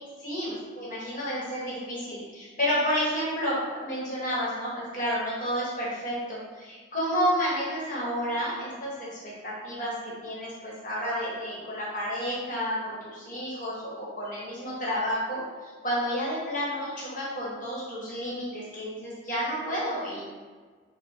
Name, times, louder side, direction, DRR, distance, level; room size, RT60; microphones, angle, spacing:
voice 1, 0.2-20.3, equal, 40° left, -7 dB, 1.0 m, -31 dB
4.3 x 2.1 x 3.2 m, 1.5 s
head